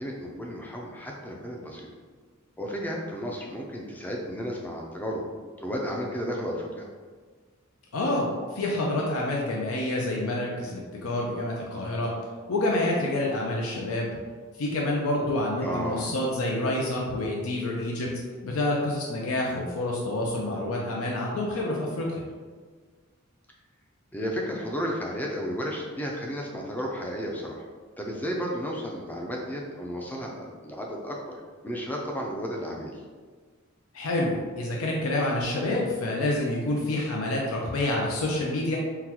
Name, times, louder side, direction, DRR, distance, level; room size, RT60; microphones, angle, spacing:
voice 1, 0.0-1.9 2.6-5.2 5.6-6.9 15.6-16.1 24.1-27.6 28.0-31.4 31.6-33.0, equal, 10° left, -1 dB, 0.4 m, -33 dB
voice 2, 7.9-12.1 12.5-14.1 14.6-18.1 18.4-22.2 33.9-38.8, left 1 dB, 80° left, -2 dB, 0.5 m, -28 dB
3.8 x 2.2 x 2.9 m, 1.5 s
head